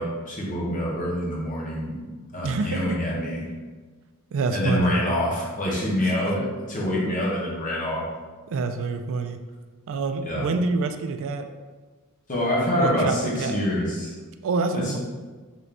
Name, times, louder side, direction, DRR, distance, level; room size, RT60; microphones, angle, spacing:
voice 1, 0.0-1.9 2.3-3.5 4.5-8.1 10.2-10.5 12.3-14.1 14.7-15.0, equal, 35° left, -4 dB, 0.9 m, -26 dB
voice 2, 2.4-3.0 4.3-4.9 6.0-6.1 8.5-9.4 9.9-11.4 12.8-13.5 14.4-15.0, right 4 dB, 60° right, 7 dB, 0.3 m, -27 dB
3.8 x 2.5 x 3.3 m, 1.4 s
head